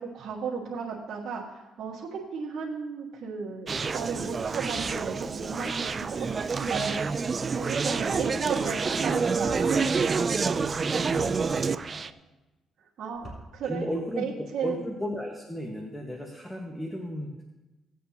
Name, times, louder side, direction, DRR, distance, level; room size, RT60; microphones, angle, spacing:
voice 1, 0.0-7.1 7.5-10.1 13.0-13.8 14.1-14.8, right 6 dB, 70° right, -6 dB, 1.6 m, -34 dB
Conversation, 3.7-12.1, right 5 dB, 35° right, 0.4 m, -28 dB
sound 1, 8.1-8.3 9.4-9.6 11.1-11.3 13.1-13.4, equal, 25° left, 3.7 m, -41 dB
voice 2, 11.0-12.1 13.6-17.4, left 1 dB, 10° left, 1 dB, 1.4 m, -35 dB
17.5 x 8.3 x 2.9 m, 1.0 s
cardioid pair, 90°, 0 cm